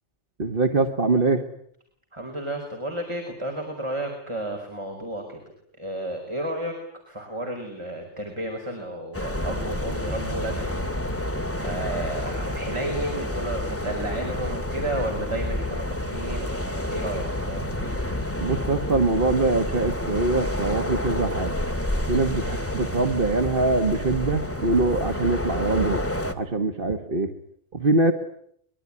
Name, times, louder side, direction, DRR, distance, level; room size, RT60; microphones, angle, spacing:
voice 1, 0.4-1.5 18.4-21.5 22.1-26.0 26.4-27.3 27.7-28.1, right 3 dB, 50° right, 6 dB, 1.7 m, -23 dB
voice 2, 2.1-5.4 5.8-6.8 7.1-10.9 11.6-17.8 22.4-22.6, right 1 dB, 25° right, 2 dB, 4.8 m, -32 dB
sound 1, 9.1-26.3, left 1 dB, 10° left, 2.3 m, -29 dB
24.5 x 23.0 x 9.8 m, 0.69 s
omnidirectional pair, 1.2 m